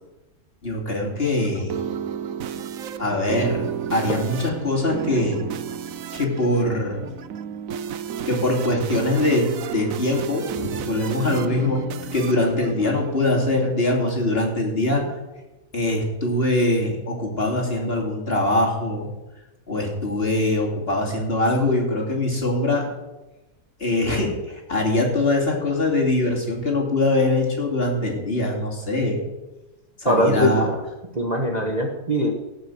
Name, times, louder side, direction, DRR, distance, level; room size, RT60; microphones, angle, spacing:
voice 1, 0.6-1.8 3.0-5.4 6.1-7.1 8.3-9.4 9.7-15.2 15.7-19.1 19.7-22.9 23.8-29.2 30.0-30.7, left 2 dB, 35° left, 0 dB, 2.9 m, -23 dB
sound 1, 1.2-13.7, right 8 dB, 65° right, 1.1 m, -32 dB
voice 2, 30.1-30.8 31.1-32.3, equal, 30° right, 1 dB, 1.3 m, -21 dB
17.5 x 6.0 x 7.8 m, 1.1 s
omnidirectional pair, 1.7 m